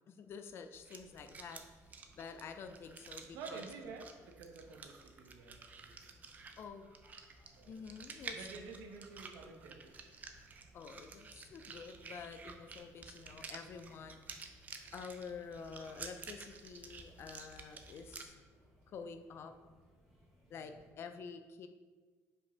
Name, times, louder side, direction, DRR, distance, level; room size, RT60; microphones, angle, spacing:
voice 1, 0.0-1.6 2.1-3.7 6.6-8.5 10.7-14.2 14.9-18.4 18.9-19.5 20.5-21.7, left 5 dB, 40° left, 8 dB, 0.5 m, -49 dB
sound 1, 0.7-18.2, right 4 dB, 25° right, 0.5 m, -52 dB
sound 2, 1.0-20.9, equal, ahead, 1.6 m, -67 dB
voice 2, 3.2-6.2 7.6-8.0 8.3-10.3 20.5-20.8, right 4 dB, 85° right, 4 dB, 1.0 m, -51 dB
5.4 x 5.3 x 5.0 m, 1.4 s
cardioid pair, 170°, 6 cm